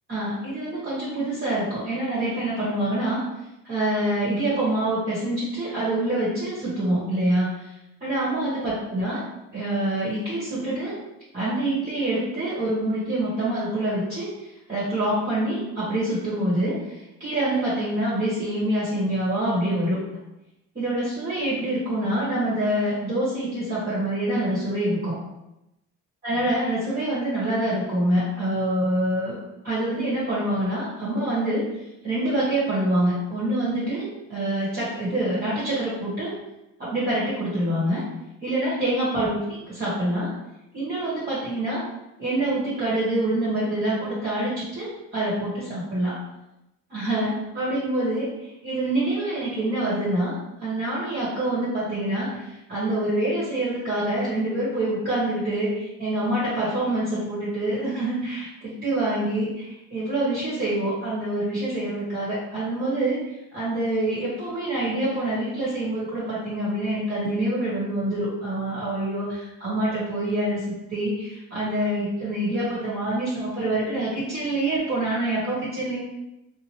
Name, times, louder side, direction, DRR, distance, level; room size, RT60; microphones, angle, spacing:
voice 1, 0.1-3.2 3.6-7.7 8.0-9.2 9.5-10.9 11.3-20.0 20.7-25.2 26.2-29.4 29.6-31.7 32.0-36.3 36.8-38.0 38.4-39.4 39.8-40.3 40.7-41.8 42.2-46.2 46.9-50.3 50.6-63.2 63.5-70.6 70.9-76.0, right 1 dB, 30° right, -9 dB, 1.2 m, -26 dB
2.8 x 2.1 x 2.9 m, 0.91 s
cardioid pair, 90°, 30 cm